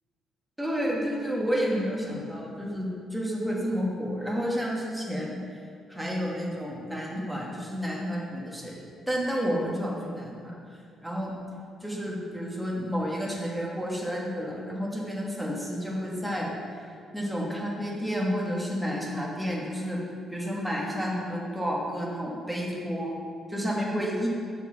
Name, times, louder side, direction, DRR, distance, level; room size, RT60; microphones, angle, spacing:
voice 1, 0.6-5.4 5.9-8.8 9.1-10.5 11.0-11.3 11.8-16.5 17.1-20.0 20.3-23.1 23.5-24.3, equal, ahead, -4 dB, 1.5 m, -30 dB
7.7 x 6.6 x 5.5 m, 2.3 s
cardioid pair, 165°, 0 cm